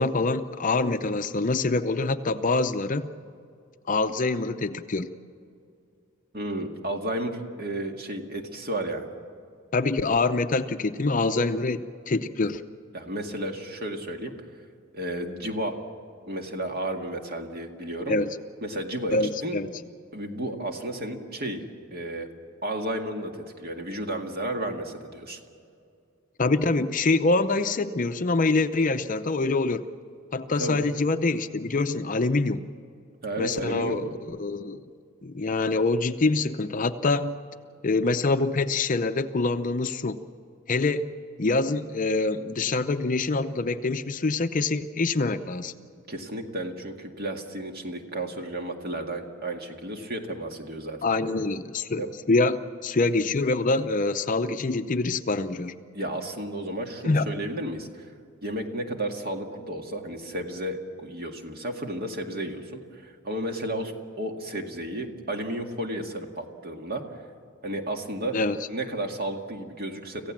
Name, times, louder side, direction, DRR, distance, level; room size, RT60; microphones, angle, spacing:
voice 1, 0.0-3.1 3.9-5.1 9.7-12.6 18.1-18.4 19.1-19.7 26.4-29.9 30.3-32.7 33.4-34.8 35.2-37.3 37.8-40.2 40.7-41.1 41.4-45.7 51.0-52.0 52.3-55.8 57.0-57.3 68.3-68.7, left 3 dB, 40° left, 10 dB, 0.6 m, -25 dB
voice 2, 6.3-9.1 12.9-14.3 14.9-15.8 16.3-18.2 18.6-19.2 19.4-19.6 20.1-21.6 21.9-22.3 22.6-25.4 30.5-30.8 33.2-34.0 46.1-51.1 52.0-52.1 55.9-58.1 58.4-67.0 67.6-68.4 68.7-70.3, right 1 dB, 45° right, 3 dB, 2.0 m, -32 dB
26.5 x 15.5 x 7.4 m, 2.4 s
head